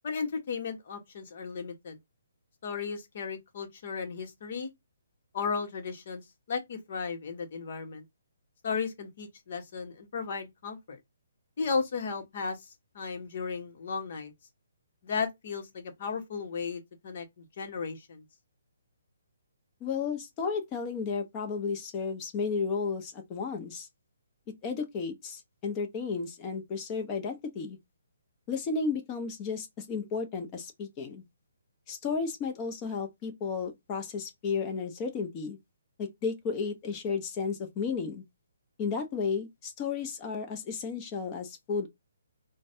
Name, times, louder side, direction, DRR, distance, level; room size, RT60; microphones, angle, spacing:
voice 1, 0.0-2.0 2.6-4.7 5.3-6.2 6.5-8.0 8.6-11.0 11.6-12.7 12.9-14.3 15.0-18.2, left 5 dB, 50° left, 1.1 m, -35 dB
voice 2, 19.8-23.9 24.6-27.8 28.5-31.2 31.9-35.6 36.0-38.2 38.8-41.9, left 5 dB, 20° left, 0.8 m, -33 dB
3.9 x 2.2 x 2.7 m
hypercardioid pair, 155°, 0 cm